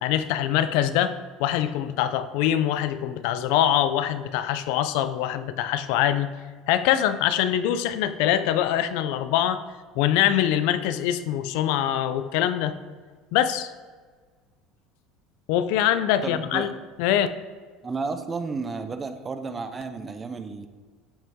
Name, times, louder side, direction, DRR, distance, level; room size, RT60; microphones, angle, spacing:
voice 1, 0.0-6.3 6.7-9.6 9.9-12.8 13.3-13.7 15.5-16.7 17.0-17.3, left 11 dB, 65° left, 12 dB, 0.5 m, -23 dB
voice 2, 16.2-16.7 17.8-20.7, right 4 dB, 15° right, 9 dB, 0.5 m, -32 dB
13.0 x 5.6 x 3.7 m, 1.5 s
cardioid pair, 165°, 0 cm